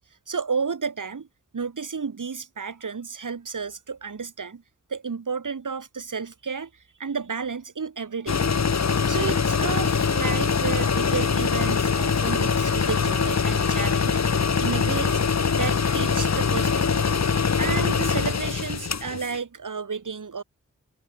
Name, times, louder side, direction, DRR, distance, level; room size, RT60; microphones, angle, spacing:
voice 1, 0.3-1.3 1.5-4.6 4.9-6.7 7.0-8.6 9.1-14.2 14.6-15.2 15.5-17.2 17.6-20.4, right 5 dB, 75° right, 4.8 m, -32 dB
sound 1, 8.3-19.4, left 5 dB, 60° left, 1.3 m, -23 dB
cardioid pair, 40°, 31 cm